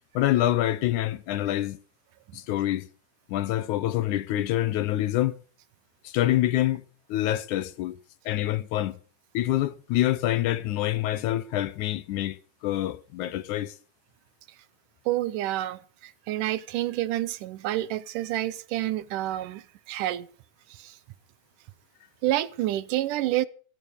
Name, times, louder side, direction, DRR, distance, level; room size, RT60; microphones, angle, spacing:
voice 1, 0.2-1.8 2.3-2.9 3.3-5.4 6.0-6.8 7.1-8.0 8.3-9.0 9.3-12.4 12.6-13.7, left 14 dB, 75° left, 2.2 m, -26 dB
voice 2, 15.1-20.3 20.7-21.0 22.2-23.5, right 14 dB, 85° right, 2.5 m, -29 dB
17.0 x 13.5 x 5.2 m
omnidirectional pair, 3.6 m